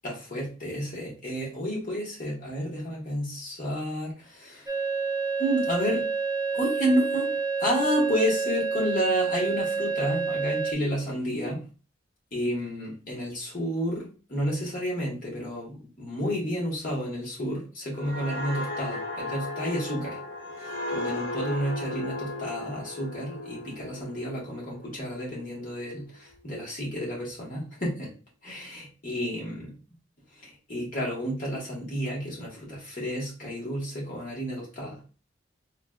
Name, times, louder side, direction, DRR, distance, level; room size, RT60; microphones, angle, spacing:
voice 1, 0.0-4.7 5.4-6.1 6.5-11.6 12.3-20.2 20.6-28.1 28.4-29.7 30.4-35.0, equal, 50° left, -4 dB, 1.4 m, -31 dB
sound 1, 4.7-10.7, right 5 dB, 20° right, 0.4 m, -28 dB
sound 2, 17.9-25.4 25.8-26.1, left 2 dB, 85° left, 1.0 m, -36 dB
3.8 x 2.5 x 2.3 m, 0.35 s
head